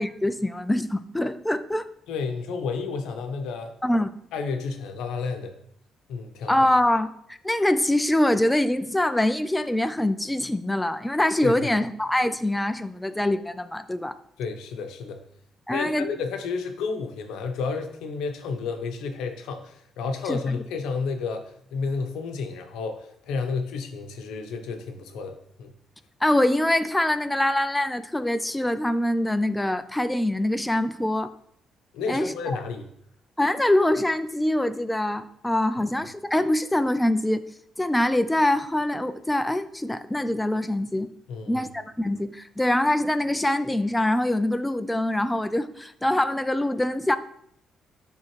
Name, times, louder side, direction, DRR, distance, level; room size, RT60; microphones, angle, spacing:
voice 1, 0.0-1.8 3.8-4.1 6.5-14.2 15.7-16.1 20.3-20.6 26.2-31.3 32.1-32.6 33.4-37.4 37.8-41.1 41.5-47.2, left 1 dB, 10° left, 10 dB, 0.4 m, -24 dB
voice 2, 2.1-3.7 4.3-5.5 6.1-6.7 11.4-11.7 14.4-15.2 15.7-25.7 31.9-32.8 41.3-41.7, left 4 dB, 90° left, 6 dB, 0.8 m, -31 dB
10.0 x 3.6 x 3.2 m, 0.70 s
cardioid pair, 90°, 0 cm